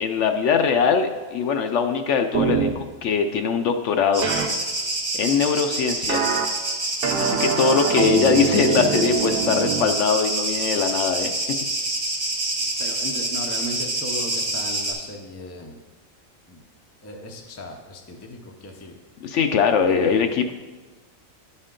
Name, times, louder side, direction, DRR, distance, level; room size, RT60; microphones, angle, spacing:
voice 1, 0.0-4.3 5.2-6.2 7.2-11.3 19.2-20.5, left 6 dB, 70° left, 6 dB, 0.8 m, -21 dB
sound 1, 2.3-2.7 4.2-4.5 6.1-6.5 7.0-9.8, right 6 dB, 55° right, 0.7 m, -24 dB
sound 2, 4.1-14.9, right 2 dB, 30° right, 1.1 m, -27 dB
voice 2, 12.6-15.8 16.5-16.6 17.0-19.0 19.7-20.2, left 1 dB, 20° left, 2 dB, 0.4 m, -37 dB
11.0 x 4.3 x 3.7 m, 1.3 s
omnidirectional pair, 1.4 m